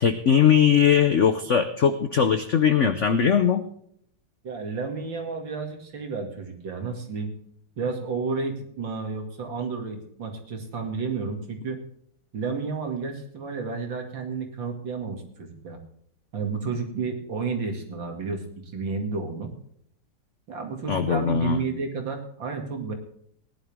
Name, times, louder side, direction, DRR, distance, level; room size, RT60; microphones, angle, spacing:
voice 1, 0.0-3.6 20.9-21.6, left 8 dB, 65° left, 10 dB, 0.7 m, -20 dB
voice 2, 4.4-7.3 7.8-11.8 12.3-15.8 16.3-18.4 18.7-19.5 20.5-22.9, right 4 dB, 60° right, 4 dB, 3.0 m, -31 dB
17.5 x 11.0 x 3.5 m, 0.67 s
omnidirectional pair, 2.3 m